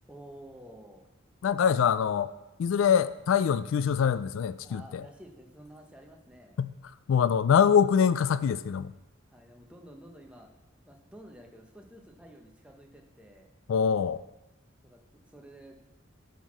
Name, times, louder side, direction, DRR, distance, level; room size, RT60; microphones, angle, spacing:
voice 1, 0.1-1.1 4.6-6.6 9.3-10.5 10.8-13.5 14.8-15.8, right 1 dB, 5° right, 0.9 m, -51 dB
voice 2, 1.4-2.3 2.6-5.0 6.6-6.7 7.1-8.9 13.7-14.2, left 7 dB, 75° left, 0.3 m, -24 dB
10.0 x 4.5 x 6.2 m
head